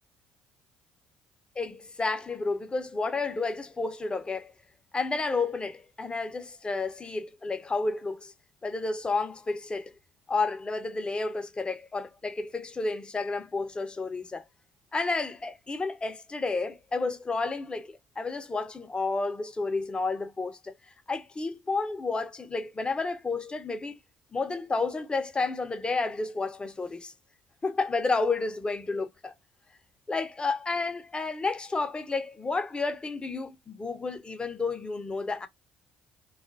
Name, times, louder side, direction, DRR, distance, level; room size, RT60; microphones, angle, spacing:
voice 1, 1.6-4.5 4.9-8.3 8.6-9.9 10.3-14.4 14.9-20.7 21.1-24.0 24.3-27.1 27.6-29.3 30.1-35.5, left 3 dB, 25° left, 0.6 m, -31 dB
2.3 x 2.1 x 2.5 m
hypercardioid pair, 60°, 4 cm